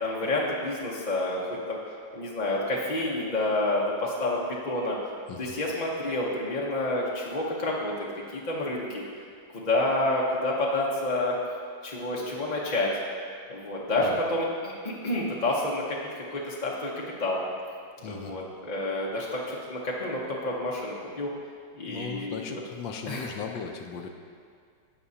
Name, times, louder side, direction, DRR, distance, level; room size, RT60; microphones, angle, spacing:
voice 1, 0.0-1.4 1.7-1.8 2.1-5.0 5.4-8.0 8.3-9.0 9.5-11.3 11.8-12.9 13.5-17.4 18.0-21.3 21.7-22.5 23.1-23.3, left 2 dB, 35° left, -4 dB, 0.7 m, -29 dB
voice 2, 18.0-18.4 21.9-24.1, left 6 dB, 75° left, 5 dB, 1.4 m, -37 dB
18.0 x 6.1 x 2.8 m, 2.2 s
omnidirectional pair, 2.0 m